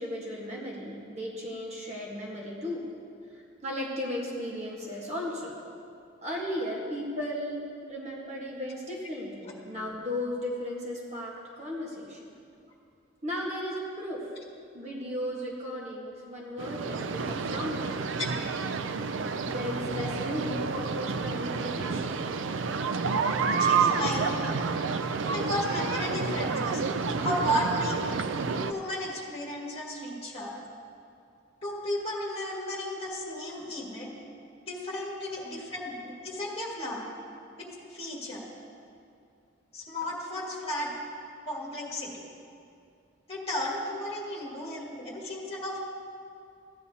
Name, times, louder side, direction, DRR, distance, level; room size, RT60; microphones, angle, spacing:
voice 1, 0.0-2.8 3.3-5.5 6.2-12.3 13.2-14.3 14.7-18.1 19.4-22.1 35.3-35.4, left 1 dB, 35° right, -3 dB, 1.3 m, -35 dB
sound 1, 16.6-28.7, right 5 dB, 75° right, 0.4 m, -29 dB
voice 2, 23.4-24.6 25.3-26.8 27.2-28.1 28.7-30.6 31.6-34.1 34.7-37.1 37.6-38.4 39.7-40.9 41.5-42.3 43.3-45.8, equal, 30° left, -4 dB, 1.9 m, -34 dB
15.5 x 9.8 x 2.8 m, 2.5 s
head